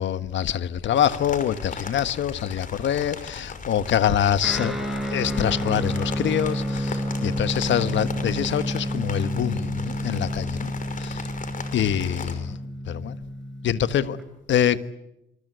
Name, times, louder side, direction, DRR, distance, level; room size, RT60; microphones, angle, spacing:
voice 1, 0.0-4.8 5.1-10.7 11.0-11.2 11.7-12.6 12.9-13.2 13.6-14.2 14.5-14.8, left 9 dB, 70° left, 1.4 m, -25 dB
sound 1, 0.9-12.3, left 4 dB, 40° left, 5.6 m, -37 dB
Guitar, 4.4-14.2, equal, ahead, 6.4 m, -30 dB
26.0 x 25.5 x 8.1 m
cardioid pair, 90°, 20 cm